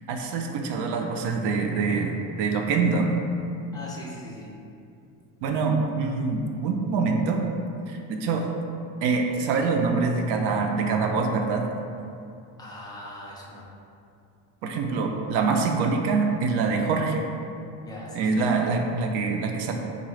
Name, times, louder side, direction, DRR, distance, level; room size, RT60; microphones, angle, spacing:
voice 1, 0.1-3.1 5.4-7.4 7.9-8.5 9.0-11.7 14.6-17.2 18.1-19.7, right 4 dB, 65° right, 3 dB, 0.5 m, -25 dB
voice 2, 3.7-4.5 12.6-13.7 17.8-18.5, left 1 dB, 10° left, -4 dB, 0.3 m, -40 dB
3.8 x 2.2 x 3.1 m, 2.5 s
cardioid pair, 125°, 45 cm